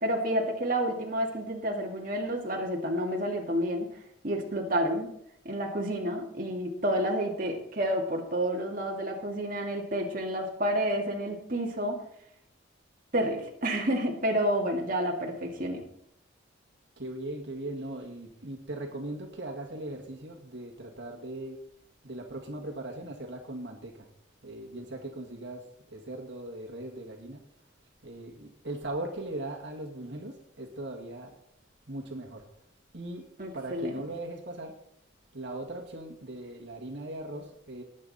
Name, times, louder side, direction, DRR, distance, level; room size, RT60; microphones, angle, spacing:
voice 1, 0.0-3.9 4.2-5.1 5.4-12.0 13.1-15.8 33.4-33.9, right 1 dB, 45° right, 0 dB, 2.2 m, -29 dB
voice 2, 17.0-21.6 22.0-24.1 24.4-25.6 25.9-27.4 28.0-31.4 31.9-32.4 32.9-33.2 33.5-34.7 35.3-37.8, right 1 dB, 60° right, 2 dB, 2.1 m, -39 dB
20.0 x 8.6 x 4.2 m, 0.73 s
head